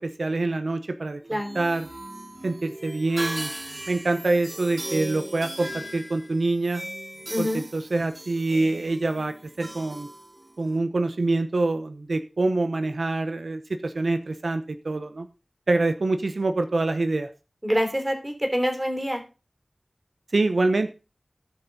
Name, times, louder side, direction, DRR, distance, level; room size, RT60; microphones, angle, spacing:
voice 1, 0.0-1.9 2.4-3.5 3.9-6.8 7.4-7.5 7.7-10.1 10.6-15.3 15.7-17.3 20.3-20.9, right 2 dB, 90° right, 9 dB, 0.7 m, -25 dB
sound 1, 1.2-10.8, right 1 dB, 45° right, 3.4 m, -38 dB
voice 2, 7.3-7.6 17.6-19.2, equal, 15° right, 4 dB, 3.1 m, -26 dB
16.5 x 5.8 x 4.0 m, 0.32 s
wide cardioid pair, 60°, 0 cm